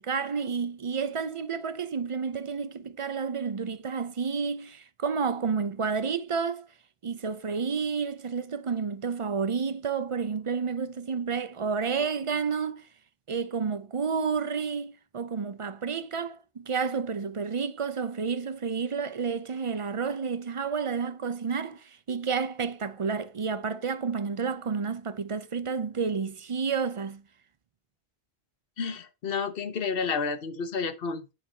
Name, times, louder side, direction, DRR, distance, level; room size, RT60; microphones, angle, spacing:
voice 1, 0.0-6.7 7.0-12.9 13.3-27.2, right 5 dB, 40° right, 0.5 m, -30 dB
voice 2, 28.8-31.3, left 5 dB, 65° left, 1.2 m, -31 dB
9.2 x 5.1 x 4.3 m
omnidirectional pair, 1.0 m